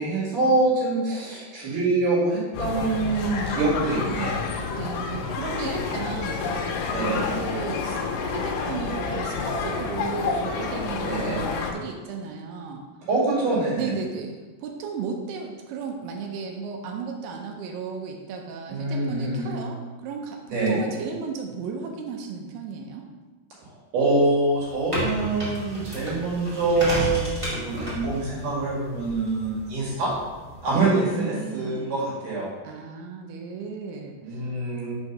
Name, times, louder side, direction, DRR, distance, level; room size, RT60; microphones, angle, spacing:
voice 1, 0.0-4.4 6.9-7.2 11.1-11.4 13.1-13.9 18.7-19.6 20.5-20.8 23.9-30.1 30.6-32.5 34.2-34.9, right 2 dB, 60° right, -6 dB, 3.3 m, -25 dB
sound 1, 2.5-11.7, left 4 dB, 80° left, 2.0 m, -29 dB
voice 2, 4.8-8.0 8.2-12.9 13.7-14.4 14.6-23.1 30.8-32.0 32.6-34.5, right 5 dB, 85° right, 2 dB, 2.7 m, -35 dB
sound 2, 24.5-30.8, equal, 15° right, 1.3 m, -33 dB
5.8 x 4.5 x 5.3 m, 1.3 s
omnidirectional pair, 4.5 m